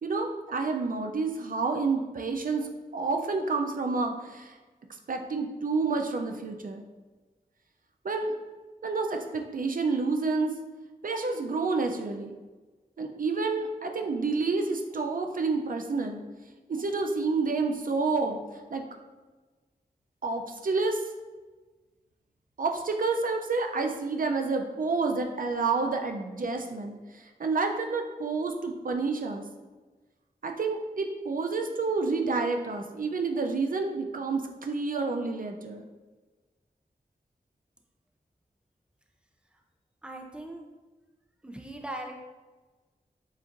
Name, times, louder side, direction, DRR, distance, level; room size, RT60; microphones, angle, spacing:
voice 1, 0.0-4.5 5.1-6.8 8.0-8.3 8.8-10.5 11.0-12.3 13.0-16.2 16.7-18.4 18.7-18.8 20.2-21.0 22.6-29.4 30.4-35.9, right 4 dB, 60° right, 4 dB, 0.5 m, -29 dB
voice 2, 40.0-40.7 41.4-42.2, right 1 dB, 5° right, 2 dB, 0.5 m, -39 dB
7.1 x 2.6 x 2.5 m, 1.3 s
wide cardioid pair, 65°, 16 cm